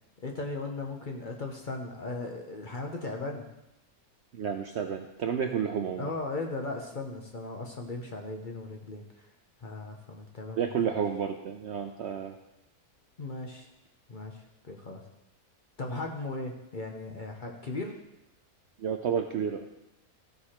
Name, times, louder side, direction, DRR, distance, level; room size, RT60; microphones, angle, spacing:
voice 1, 0.2-3.5 6.0-9.3 9.6-11.0 13.2-13.7 14.1-15.0 15.8-18.0, left 2 dB, 40° left, 2 dB, 0.9 m, -37 dB
voice 2, 4.3-6.1 10.6-12.4 18.8-19.7, right 7 dB, 65° right, 5 dB, 0.7 m, -31 dB
14.0 x 4.8 x 4.3 m, 0.90 s
omnidirectional pair, 1.6 m